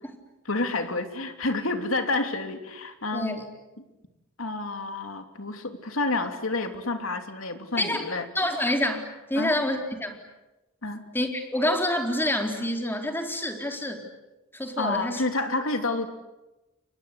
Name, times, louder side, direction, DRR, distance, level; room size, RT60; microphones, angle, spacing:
voice 1, 0.4-3.3 3.8-3.9 4.4-8.3 9.3-9.5 10.8-11.0 14.8-16.1, left 2 dB, 80° left, 6 dB, 3.1 m, -29 dB
voice 2, 3.1-3.4 7.8-8.0 8.3-10.2 11.1-14.0 14.5-15.2, left 1 dB, 10° left, 3 dB, 4.0 m, -27 dB
29.5 x 24.0 x 8.3 m, 1.0 s
head